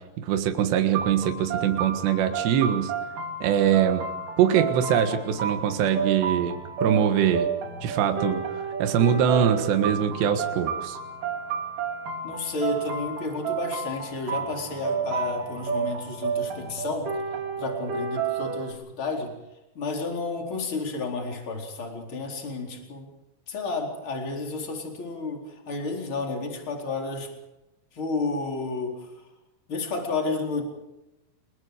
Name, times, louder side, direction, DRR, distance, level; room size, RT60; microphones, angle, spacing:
voice 1, 0.0-2.9 3.4-4.0 4.4-6.6 6.8-7.5 7.8-11.0, right 9 dB, 80° right, 6 dB, 3.8 m, -23 dB
sound 1, 0.9-18.7, right 6 dB, 50° right, 4.3 m, -31 dB
voice 2, 12.2-17.1 17.6-19.3 19.7-23.1 23.5-27.3 27.9-29.1 29.7-30.6, left 3 dB, 30° left, 1 dB, 4.7 m, -31 dB
29.5 x 22.5 x 5.0 m, 0.94 s
omnidirectional pair, 5.0 m